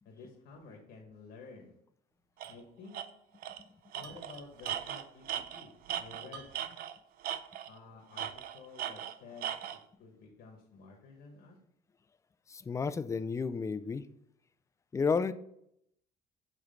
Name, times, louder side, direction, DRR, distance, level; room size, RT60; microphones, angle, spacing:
voice 1, 0.0-1.8 2.5-3.0 3.9-6.5 7.7-8.3 8.5-11.6, left 4 dB, 75° left, 0 dB, 1.5 m, -52 dB
Tools, 2.4-2.5 2.9-3.1 3.4-3.6 3.9-7.0 7.2-7.8 8.2-9.8, right 10 dB, 60° right, 0.5 m, -38 dB
sound 1, 2.4-2.7 3.0-3.1 4.0-5.1 6.3-6.8 7.3-7.4 8.2-8.6, right 5 dB, 75° right, 0.9 m, -52 dB
voice 2, 12.5-14.1 14.9-15.3, left 5 dB, 20° left, 12 dB, 0.3 m, -31 dB
7.4 x 3.2 x 5.1 m, 0.74 s
cardioid pair, 110°, 17 cm